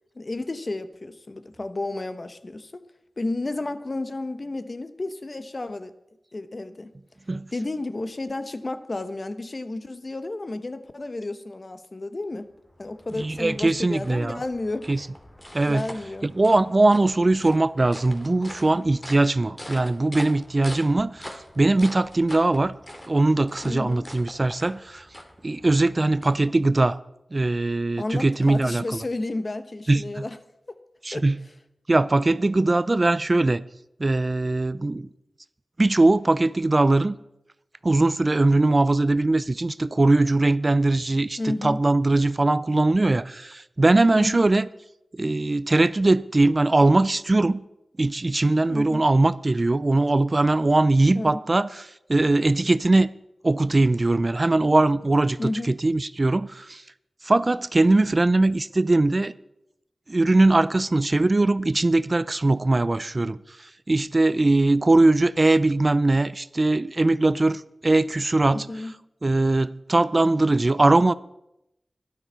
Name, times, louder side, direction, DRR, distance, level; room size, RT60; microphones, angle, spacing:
voice 1, 0.1-2.8 3.2-5.9 6.3-6.9 7.5-12.5 12.8-15.1 15.7-16.3 23.6-24.1 28.0-30.4 30.7-30.8 31.1-31.2 41.4-41.8 44.1-44.4 48.7-49.0 51.1-51.4 55.4-55.7 68.5-69.0, left 2 dB, 50° left, 1.0 m, -32 dB
sound 1, 12.4-26.9, left 1 dB, 25° left, 2.5 m, -44 dB
voice 2, 13.2-14.4 14.9-15.1 15.5-15.8 16.2-22.7 23.1-25.1 25.4-27.0 27.3-28.8 29.9-30.2 31.0-31.4 31.9-33.6 34.0-35.1 35.8-37.2 37.8-44.7 45.1-47.6 48.0-53.1 53.4-56.8 57.2-59.3 60.1-68.7 69.2-71.1, right 2 dB, 40° right, 0.5 m, -21 dB
12.5 x 11.5 x 5.5 m
cardioid pair, 45°, 0 cm